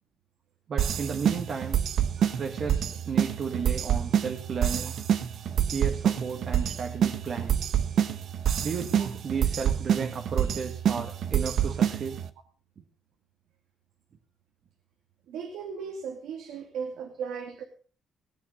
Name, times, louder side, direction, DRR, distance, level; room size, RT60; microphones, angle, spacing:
voice 1, 0.7-1.8 2.4-4.9 5.7-7.6 8.6-12.2, right 6 dB, 45° right, 2 dB, 1.7 m, -33 dB
sound 1, 0.8-12.3, right 9 dB, 65° right, 1.0 m, -27 dB
voice 2, 15.3-17.6, right 6 dB, 90° right, 3 dB, 2.2 m, -37 dB
18.5 x 9.0 x 5.4 m, 0.40 s
cardioid pair, 125°, 0 cm